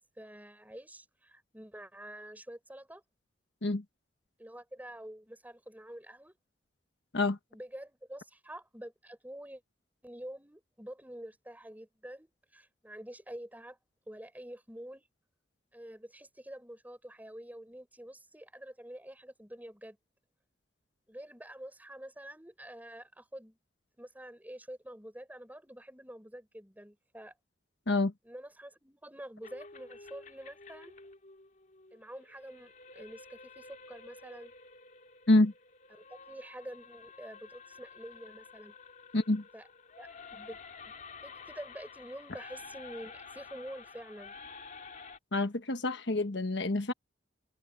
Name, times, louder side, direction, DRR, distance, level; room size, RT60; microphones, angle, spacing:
voice 1, 0.2-3.0 4.4-6.3 7.5-9.6 10.0-13.8 14.1-15.1 15.7-20.0 21.1-23.6 24.0-27.3 28.2-31.0 31.9-34.5 35.9-38.7 39.5-39.7 40.0-40.6 41.2-44.4, right 1 dB, 10° right, 5.9 m, -47 dB
sound 1, 29.4-45.2, left 4 dB, 45° left, 2.8 m, -51 dB
voice 2, 39.1-39.4 45.3-46.9, left 2 dB, 70° left, 1.4 m, -27 dB
head